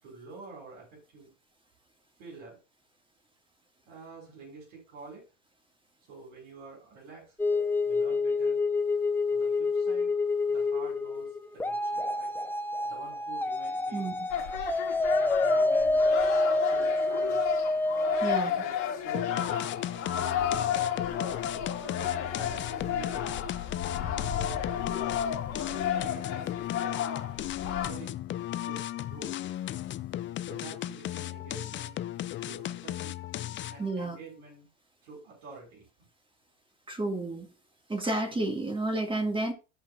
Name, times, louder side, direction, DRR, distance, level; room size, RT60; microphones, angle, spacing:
voice 1, 0.0-1.3 2.2-2.6 3.9-5.2 6.1-7.3 7.9-8.6 9.3-10.1 10.5-12.3 12.8-14.2 15.2-17.4 18.2-20.9 21.7-23.4 23.9-24.6 25.5-26.5 27.6-28.1 28.7-29.4 30.4-32.0 32.4-33.2 33.7-34.7 35.0-35.9, right 3 dB, 75° right, 5.5 m, -48 dB
sound 1, 7.4-18.4, left 3 dB, 5° left, 0.8 m, -27 dB
sound 2, 14.3-27.9, left 8 dB, 75° left, 2.3 m, -32 dB
sound 3, 19.1-33.9, left 13 dB, 30° left, 0.5 m, -36 dB
voice 2, 33.8-34.2 36.9-37.5 37.9-39.5, right 2 dB, 15° right, 2.1 m, -30 dB
15.5 x 5.2 x 2.6 m
hypercardioid pair, 95°, 39 cm